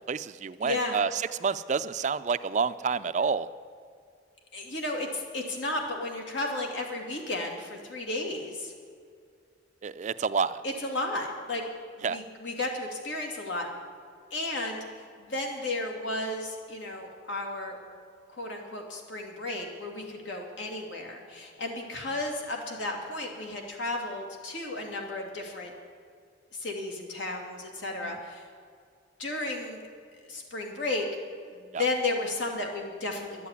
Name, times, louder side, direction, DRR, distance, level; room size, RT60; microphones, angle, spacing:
voice 1, 0.1-1.1 1.4-3.5 9.8-10.6 12.0-12.2 28.0-28.2 31.7-31.8, right 5 dB, 40° right, 14 dB, 0.4 m, -28 dB
voice 2, 0.6-1.0 4.5-8.7 10.6-11.6 12.0-13.7 14.3-17.8 18.3-25.7 26.5-28.5 29.2-29.8 30.2-31.0 31.4-33.5, left 2 dB, 85° left, 1 dB, 2.5 m, -33 dB
12.0 x 8.6 x 9.6 m, 2.2 s
head